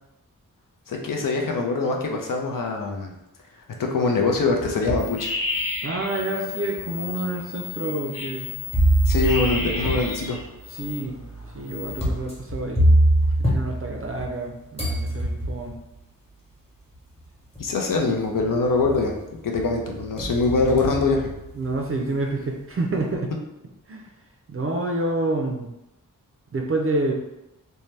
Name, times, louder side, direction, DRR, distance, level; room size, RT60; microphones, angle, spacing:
voice 1, 0.9-3.1 3.8-5.3 9.1-10.4 17.6-19.1 19.4-21.3, left 3 dB, 70° left, 1 dB, 0.6 m, -23 dB
sound 1, 4.2-5.1 5.7-5.8 6.7-6.8 8.7-14.4 14.8-15.8 16.9-17.0 17.5-18.0 18.3-19.1 19.5-21.9, right 1 dB, 20° left, 1.0 m, -24 dB
sound 2, 5.0-11.0 11.4-12.1, left 4 dB, 45° left, 1.0 m, -32 dB
voice 2, 5.8-8.6 10.7-11.2 11.5-12.9 13.4-15.8 21.5-23.3 23.9-24.1 24.5-25.7 26.5-27.1, right 2 dB, 40° right, 1 dB, 0.4 m, -28 dB
2.7 x 2.2 x 3.2 m, 0.89 s
wide cardioid pair, 85°, 34 cm